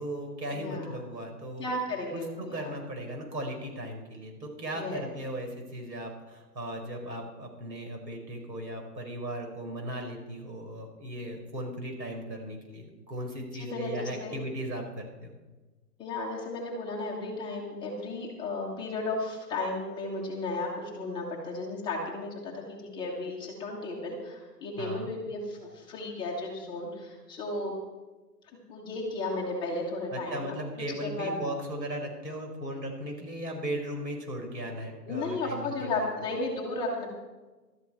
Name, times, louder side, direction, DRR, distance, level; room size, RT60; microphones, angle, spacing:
voice 1, 0.0-1.7 2.1-15.3 24.8-25.1 30.1-36.1, right 1 dB, 85° right, 2 dB, 4.8 m, -37 dB
voice 2, 0.5-1.0 1.6-2.7 4.7-5.0 13.6-14.4 16.0-27.7 28.7-30.4 30.7-31.3 35.1-37.1, left 2 dB, 10° left, -3 dB, 1.5 m, -34 dB
14.0 x 13.0 x 4.4 m, 1.2 s
hypercardioid pair, 150°, 50 cm